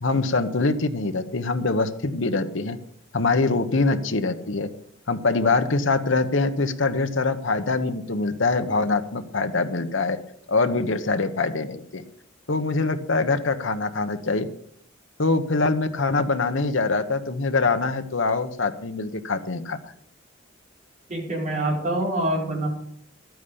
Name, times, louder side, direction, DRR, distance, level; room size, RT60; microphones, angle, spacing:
voice 1, 0.0-2.8 3.1-4.7 5.1-10.2 10.5-12.0 12.5-14.5 15.2-19.9, left 3 dB, 80° left, 8 dB, 1.1 m, -24 dB
voice 2, 21.1-22.7, right 1 dB, 40° right, -2 dB, 5.1 m, -25 dB
12.5 x 9.3 x 6.9 m, 0.67 s
head